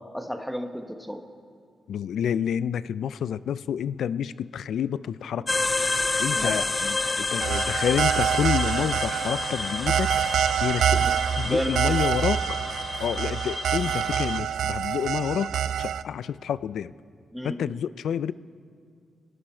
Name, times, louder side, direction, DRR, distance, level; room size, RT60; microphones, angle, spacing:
voice 1, 0.1-1.2 6.4-6.6 11.0-11.1 11.4-11.9 17.3-17.6, equal, ahead, 6 dB, 1.0 m, -31 dB
voice 2, 1.9-5.6 6.2-10.1 10.6-11.1 11.4-12.6 13.0-15.5 15.8-16.9 17.4-18.3, left 8 dB, 80° left, 17 dB, 0.3 m, -29 dB
sound 1, 5.5-14.4, left 3 dB, 25° left, 0.5 m, -30 dB
sound 2, 7.4-16.0, right 9 dB, 85° right, 0.4 m, -26 dB
23.5 x 11.5 x 4.4 m, 2.2 s
cardioid pair, 105°, 0 cm